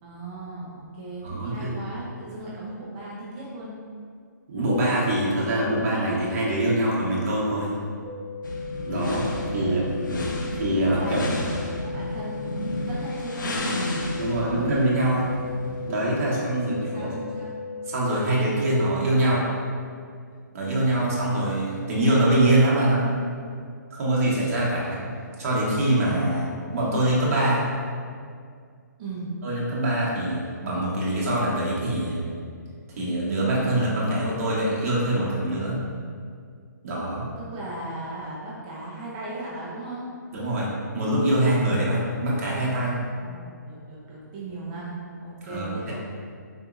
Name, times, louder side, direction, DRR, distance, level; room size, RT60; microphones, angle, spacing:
voice 1, 0.0-3.8 9.6-9.8 10.7-14.0 14.3-14.7 16.2-17.6 29.0-29.3 37.4-40.1 43.2-46.0, right 2 dB, 25° right, -6 dB, 0.5 m, -37 dB
voice 2, 1.2-1.8 4.5-7.7 8.8-9.3 9.5-10.2 10.5-11.3 14.2-15.3 15.8-17.1 17.9-19.5 20.5-23.1 23.9-25.0 25.4-27.6 29.4-32.3 33.0-35.8 36.8-37.3 40.3-43.0 45.4-46.0, right 1 dB, 45° right, -6 dB, 0.8 m, -24 dB
sound 1, 8.0-18.1, left 5 dB, 5° left, 1.0 m, -36 dB
sound 2, 8.4-16.0, left 1 dB, 85° left, 0.5 m, -32 dB
3.8 x 2.6 x 2.4 m, 2.1 s
hypercardioid pair, 155°, 10 cm